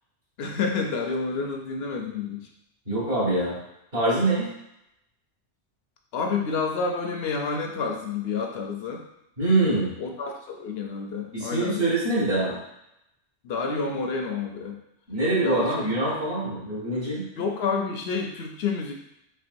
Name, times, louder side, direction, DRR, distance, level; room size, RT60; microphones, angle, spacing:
voice 1, 0.4-2.5 6.1-9.0 10.0-11.8 13.4-14.8 15.4-15.9 17.4-18.9, left 4 dB, 65° left, 2 dB, 0.8 m, -29 dB
voice 2, 2.9-3.6 3.9-4.5 9.4-9.9 11.3-12.6 15.1-17.3, right 2 dB, 55° right, -8 dB, 2.0 m, -24 dB
4.4 x 3.5 x 2.6 m, 0.83 s
omnidirectional pair, 1.2 m